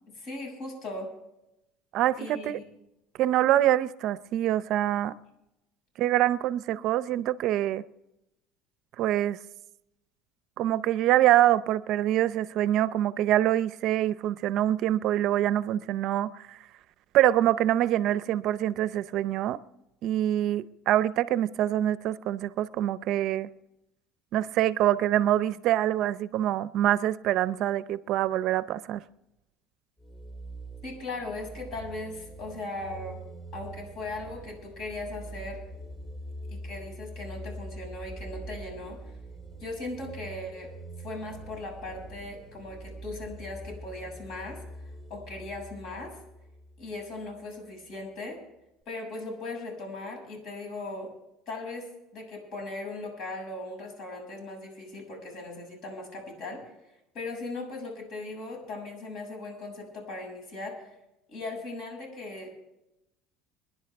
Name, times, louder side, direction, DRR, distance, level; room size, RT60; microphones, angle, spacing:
voice 1, 0.1-1.1 2.2-2.6 30.8-33.2 33.5-35.6 36.5-39.0 39.6-44.6 45.1-46.1 46.8-48.4 48.9-51.1 51.5-51.9 52.1-56.6 57.1-60.9 61.3-62.5, left 2 dB, 55° left, 6.8 m, -38 dB
voice 2, 1.9-2.6 3.2-5.2 6.0-7.8 9.0-9.4 10.6-16.6 17.1-19.6 20.0-23.5 24.3-29.0, right 13 dB, 55° right, 0.6 m, -25 dB
sound 1, 30.0-47.4, right 2 dB, 25° left, 3.8 m, -44 dB
25.0 x 10.5 x 3.5 m
cardioid pair, 135°, 0 cm